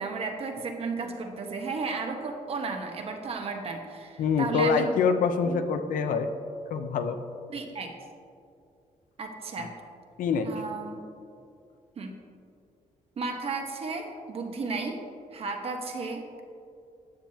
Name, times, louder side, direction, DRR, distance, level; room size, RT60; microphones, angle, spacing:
voice 1, 0.0-4.9 5.4-5.6 7.5-7.9 9.2-9.7 10.4-11.0 12.0-12.1 13.2-15.0 15.3-16.4, right 4 dB, 45° right, 4 dB, 1.1 m, -34 dB
voice 2, 4.2-6.3 6.7-7.2 9.6-9.7 10.2-10.5, left 5 dB, 80° left, 7 dB, 0.7 m, -25 dB
14.0 x 9.2 x 2.9 m, 2.5 s
wide cardioid pair, 165°, 14 cm